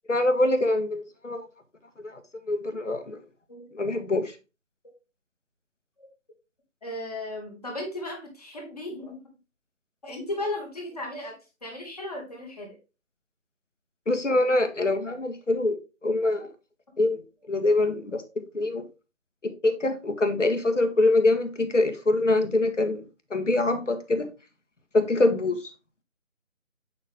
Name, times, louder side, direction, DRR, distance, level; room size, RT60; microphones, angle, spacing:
voice 1, 0.1-1.4 2.0-2.2 2.5-3.2 3.7-4.3 14.1-16.5 17.0-17.2 17.5-18.2 18.5-18.8 19.4-23.0 23.3-24.3 24.9-25.6, left 2 dB, 65° left, 1.8 m, -24 dB
voice 2, 6.8-9.2 10.0-11.3 11.6-12.8, left 1 dB, 30° left, 1.8 m, -35 dB
8.7 x 4.5 x 3.6 m
figure-of-eight pair, 165°, 40 cm